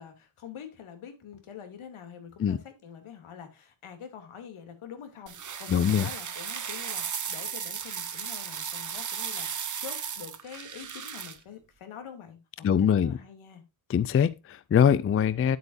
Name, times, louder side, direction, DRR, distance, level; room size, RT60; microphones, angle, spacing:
voice 1, 0.0-13.6, left 8 dB, 80° left, 2.8 m, -45 dB
sound 1, 5.3-11.4, right 7 dB, 40° right, 1.1 m, -35 dB
voice 2, 5.7-6.1 12.6-13.2 13.9-15.6, left 8 dB, 30° left, 0.4 m, -23 dB
10.5 x 8.0 x 2.6 m
wide cardioid pair, 155°, 48 cm